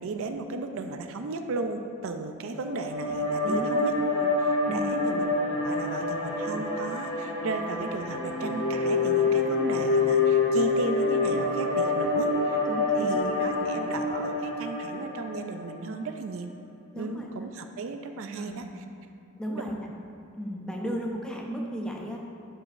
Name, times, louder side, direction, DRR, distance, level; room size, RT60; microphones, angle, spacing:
voice 1, 0.0-12.6 13.0-16.5 16.9-18.8 19.5-19.6 20.8-21.0, right 3 dB, 70° right, 6 dB, 0.4 m, -35 dB
sound 1, 2.5-15.8, left 3 dB, 70° left, 1.6 m, -27 dB
voice 2, 12.7-13.1 13.5-13.7 16.9-17.3 18.3-18.6 19.4-19.8 20.4-22.2, equal, 5° left, -1 dB, 0.6 m, -34 dB
11.0 x 4.8 x 2.6 m, 2.5 s
head